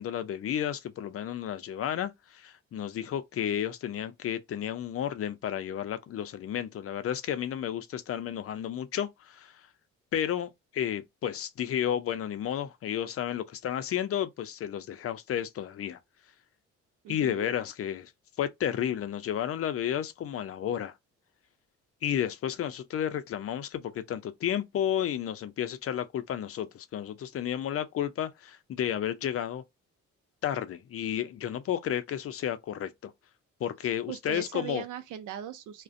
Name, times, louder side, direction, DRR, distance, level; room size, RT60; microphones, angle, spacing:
voice 1, 0.0-9.7 10.1-16.0 17.1-18.1 18.4-21.0 22.0-29.6 30.4-33.1 33.6-34.8, left 10 dB, 50° left, 0.5 m, -32 dB
voice 2, 17.0-17.5 34.1-35.8, right 10 dB, 80° right, 0.5 m, -39 dB
2.4 x 2.1 x 2.4 m
cardioid pair, 90°, 30 cm